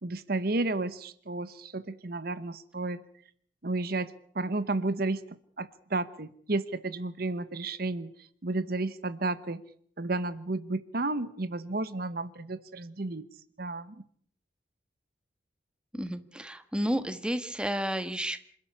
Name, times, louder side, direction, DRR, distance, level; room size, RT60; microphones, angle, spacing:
voice 1, 0.0-3.0 3.6-9.6 10.0-13.2 13.6-13.9, right 2 dB, 55° right, 15 dB, 1.0 m, -32 dB
voice 2, 15.9-18.4, equal, 5° right, 10 dB, 1.4 m, -31 dB
27.5 x 12.5 x 9.8 m, 0.62 s
head